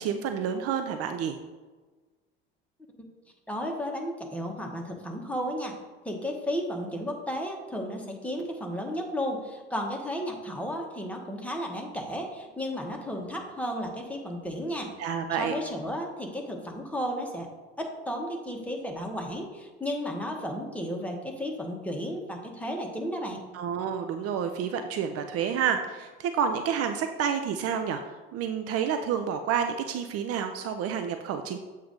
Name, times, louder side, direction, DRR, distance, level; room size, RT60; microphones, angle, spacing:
voice 1, 0.0-1.4 15.0-15.5 23.5-31.6, right 7 dB, 55° right, 7 dB, 0.5 m, -29 dB
voice 2, 3.5-5.7 6.0-14.9 15.4-17.5 17.8-23.5, equal, 5° left, 1 dB, 1.3 m, -33 dB
7.6 x 2.7 x 5.2 m, 1.3 s
hypercardioid pair, 65°, 29 cm